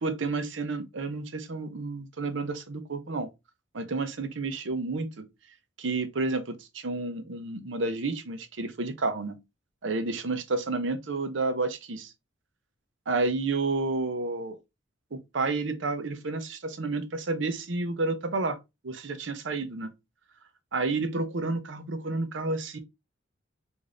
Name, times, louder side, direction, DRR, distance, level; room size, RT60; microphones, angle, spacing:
voice 1, 0.0-3.3 3.7-5.3 5.8-9.4 9.8-12.1 13.1-14.5 15.1-18.6 18.8-19.9 20.7-22.8, right 3 dB, 75° right, 0.7 m, -30 dB
4.9 x 2.6 x 2.5 m
head